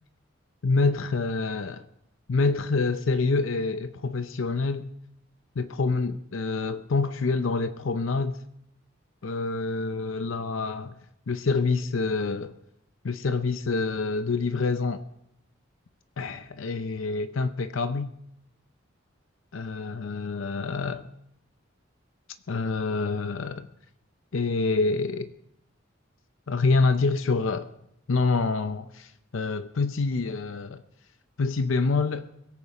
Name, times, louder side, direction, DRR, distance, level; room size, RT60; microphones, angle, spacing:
voice 1, 0.6-1.8 2.3-4.9 5.6-8.4 9.2-10.9 11.3-12.6 13.0-15.0 16.2-18.1 19.5-21.0 22.5-23.7 24.3-25.3 26.5-27.7 28.1-30.8 31.4-32.3, left 3 dB, 75° left, 11 dB, 0.6 m, -26 dB
22.0 x 8.5 x 4.9 m, 0.78 s
head